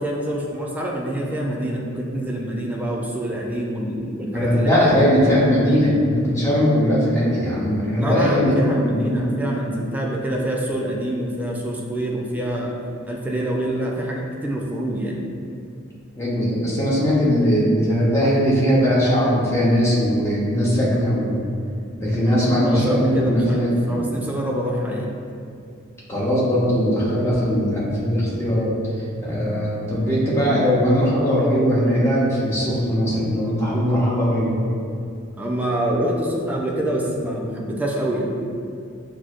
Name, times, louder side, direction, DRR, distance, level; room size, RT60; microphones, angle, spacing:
voice 1, 0.0-5.1 8.0-12.7 13.1-15.2 22.3-25.1 35.4-38.3, right 1 dB, 10° right, -2 dB, 0.3 m, -26 dB
voice 2, 4.3-9.2 16.2-21.5 22.0-24.0 26.1-28.7 29.2-34.6, equal, 15° left, -7 dB, 0.7 m, -20 dB
6.0 x 2.0 x 2.4 m, 2.4 s
head